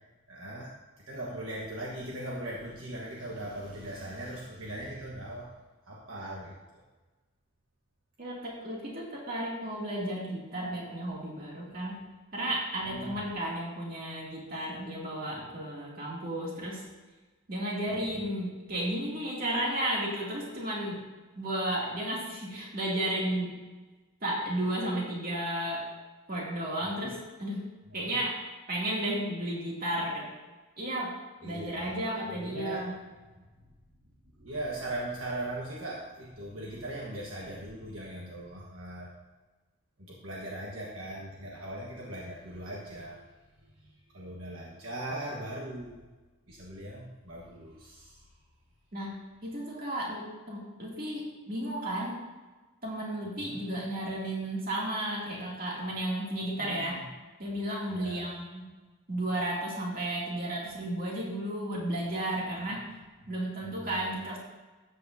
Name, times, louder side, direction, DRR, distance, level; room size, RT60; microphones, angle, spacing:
voice 1, 0.3-0.7 1.1-5.5 5.9-6.5 12.9-13.2 17.9-18.3 26.9-27.1 27.9-28.1 31.4-32.0 32.3-32.8 34.4-39.1 40.0-43.2 44.1-46.0 46.5-48.2 53.5-53.6 56.6-57.0 57.9-58.3 63.2-63.3 63.6-63.9, right 1 dB, 65° right, -4 dB, 1.4 m, -39 dB
voice 2, 8.2-12.0 12.3-16.8 17.5-21.0 21.4-23.6 24.2-25.8 26.3-27.7 27.9-28.4 28.7-30.3 30.8-31.1 31.4-32.9 48.9-52.2 52.8-57.0 57.4-58.7 59.1-62.8 63.3-64.4, right 1 dB, 40° right, -4 dB, 2.6 m, -33 dB
13.0 x 8.2 x 2.8 m, 1.2 s
head